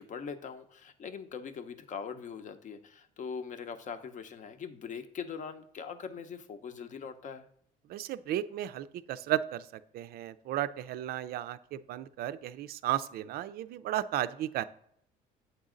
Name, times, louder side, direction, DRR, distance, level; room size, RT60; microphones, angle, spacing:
voice 1, 0.0-7.5, left 6 dB, 50° left, 9 dB, 0.7 m, -41 dB
voice 2, 7.9-14.6, right 12 dB, 65° right, 14 dB, 0.4 m, -34 dB
8.1 x 4.0 x 3.7 m, 0.69 s
cardioid pair, 110°, 17 cm